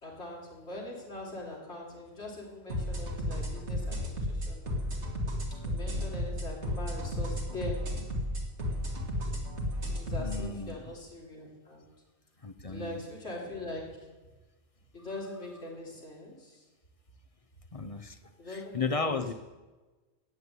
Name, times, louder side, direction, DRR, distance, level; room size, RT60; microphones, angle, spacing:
voice 1, 0.0-4.7 5.6-7.8 9.9-11.8 12.6-13.8 14.9-16.6 18.4-19.3, left 1 dB, 85° left, -3 dB, 3.4 m, -42 dB
sound 1, 2.7-10.4, equal, 85° right, 2.6 m, -33 dB
voice 2, 10.2-10.8 12.4-13.0 17.7-19.3, left 4 dB, 35° left, 9 dB, 0.7 m, -34 dB
14.5 x 9.7 x 8.3 m, 1.3 s
omnidirectional pair, 1.1 m